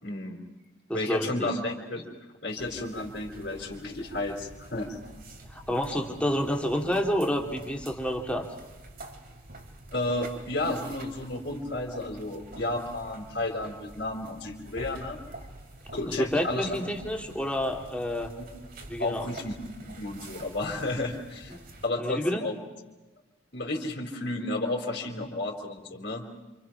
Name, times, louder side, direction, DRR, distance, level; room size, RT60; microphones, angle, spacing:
voice 1, 0.0-0.4 0.9-2.0 2.4-5.0 9.9-15.2 15.9-16.9 18.4-18.5 19.0-21.5 21.8-22.5 23.5-26.2, left 2 dB, 50° left, -2 dB, 3.9 m, -32 dB
voice 2, 0.9-1.5 5.5-8.5 16.0-18.3 18.9-19.3 22.0-22.4, equal, 5° left, 1 dB, 2.7 m, -29 dB
sound 1, 2.6-21.9, right 1 dB, 45° right, 2.8 m, -47 dB
28.5 x 27.5 x 5.9 m, 1.1 s
head